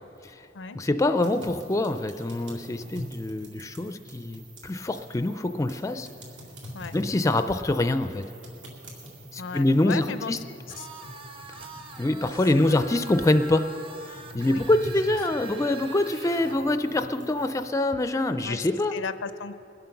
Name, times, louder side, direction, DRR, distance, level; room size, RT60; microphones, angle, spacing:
voice 1, 0.7-6.1 6.9-8.2 9.3-10.4 12.0-13.6 14.1-18.9, left 2 dB, 15° left, 9 dB, 0.4 m, -25 dB
sound 1, 1.2-17.7, equal, 75° right, 2.7 m, -44 dB
voice 2, 9.4-10.9 12.5-12.8 14.5-14.6 18.4-18.6 18.9-19.5, left 5 dB, 85° left, 12 dB, 0.5 m, -36 dB
sound 2, 10.7-16.6, right 2 dB, 30° right, 0.8 m, -43 dB
21.0 x 7.7 x 5.8 m, 2.9 s
head